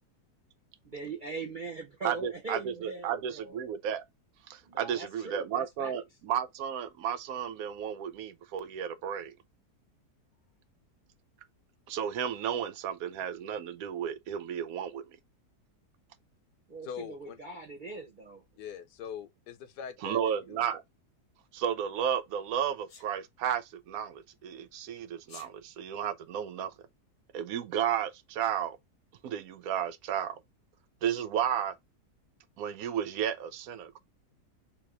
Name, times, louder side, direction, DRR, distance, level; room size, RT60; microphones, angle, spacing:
voice 1, 0.8-3.6 4.6-5.9 16.7-18.4, right 3 dB, 35° right, 1.0 m, -41 dB
voice 2, 2.0-4.0 4.5-9.3 11.9-15.0 20.0-20.8 21.5-26.7 27.3-28.8 29.2-30.4 31.0-31.7 32.6-34.0, right 9 dB, 70° right, 0.9 m, -33 dB
voice 3, 16.8-17.4 18.6-20.2 20.5-20.6, left 8 dB, 80° left, 1.2 m, -42 dB
Sneeze, 22.9-23.1 25.2-25.5, left 5 dB, 50° left, 1.1 m, -49 dB
3.6 x 2.9 x 4.8 m
omnidirectional pair, 1.8 m